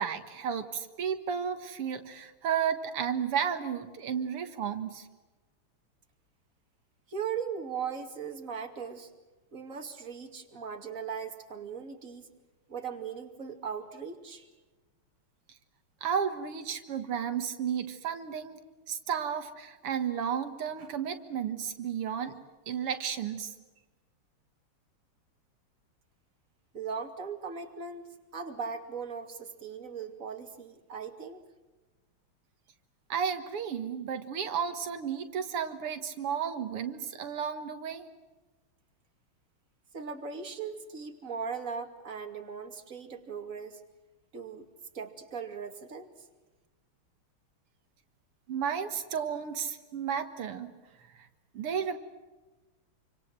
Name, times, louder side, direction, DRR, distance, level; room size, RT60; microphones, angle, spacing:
voice 1, 0.0-5.1 16.0-18.6 18.9-22.4 22.7-23.6 33.1-38.1 48.5-50.7 51.1-51.3 51.5-52.0, right 7 dB, 85° right, 7 dB, 2.5 m, -33 dB
voice 2, 7.1-9.1 9.5-12.3 12.7-14.5 26.7-31.4 39.9-43.8 44.3-44.7 44.9-46.1, right 6 dB, 35° right, 4 dB, 2.9 m, -38 dB
27.0 x 26.0 x 7.6 m, 1.2 s
omnidirectional pair, 2.4 m